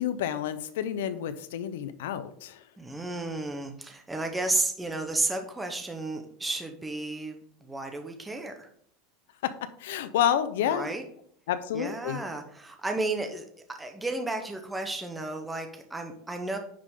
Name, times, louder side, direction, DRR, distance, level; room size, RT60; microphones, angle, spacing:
voice 1, 0.0-2.6 9.4-10.9 11.5-12.2, left 10 dB, 85° left, 12 dB, 0.8 m, -29 dB
voice 2, 2.8-8.7 10.6-11.0 11.7-16.6, right 2 dB, 10° right, 4 dB, 0.9 m, -33 dB
9.6 x 5.1 x 3.7 m, 0.63 s
supercardioid pair, 145°, 0 cm